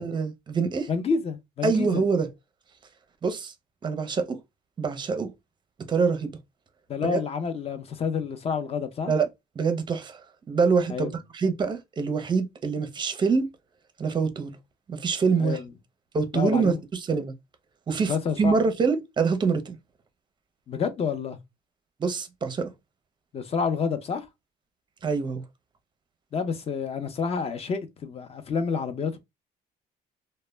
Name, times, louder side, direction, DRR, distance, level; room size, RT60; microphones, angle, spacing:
voice 1, 0.0-0.9 1.6-2.3 3.2-3.5 3.8-4.4 4.8-5.3 5.9-6.4 7.0-7.2 9.1-9.3 9.6-10.2 10.5-13.5 14.0-14.5 14.9-15.6 16.1-17.3 17.9-19.8 22.0-22.7 25.0-25.4, right 5 dB, 25° right, 0.5 m, -25 dB
voice 2, 0.9-2.0 6.9-9.1 10.9-11.1 15.4-15.7 16.3-16.7 18.0-18.5 20.7-21.4 23.3-24.3 26.3-29.2, left 5 dB, 35° left, 0.6 m, -29 dB
2.1 x 2.1 x 3.2 m
cardioid pair, 110°, 17 cm